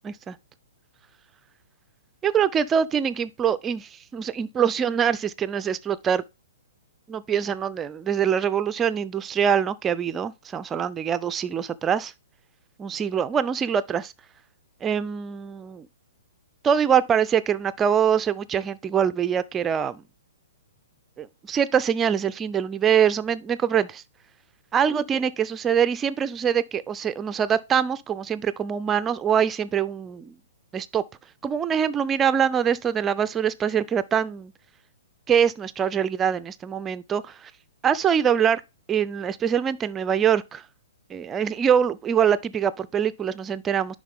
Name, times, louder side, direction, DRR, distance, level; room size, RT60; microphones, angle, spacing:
voice 1, 0.0-0.4 2.2-6.2 7.1-12.1 12.8-14.1 14.8-15.9 16.6-20.0 21.2-24.0 24.7-30.3 30.7-31.0 31.4-34.5 35.3-37.5 37.8-38.6 38.9-40.6 41.1-44.0, right 8 dB, 20° right, 0.5 m, -24 dB
10.0 x 3.7 x 3.6 m
figure-of-eight pair, 120°, 0 cm